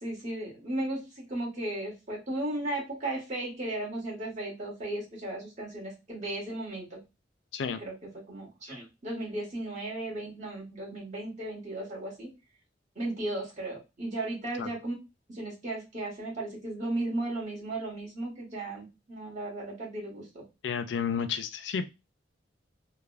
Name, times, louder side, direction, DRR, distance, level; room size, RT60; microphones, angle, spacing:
voice 1, 0.0-7.0 7.8-7.9 8.3-12.3 12.9-14.9 15.3-20.4, right 1 dB, 40° right, 1.4 m, -35 dB
voice 2, 20.6-21.9, left 6 dB, 75° left, 0.4 m, -31 dB
3.2 x 2.1 x 2.4 m
head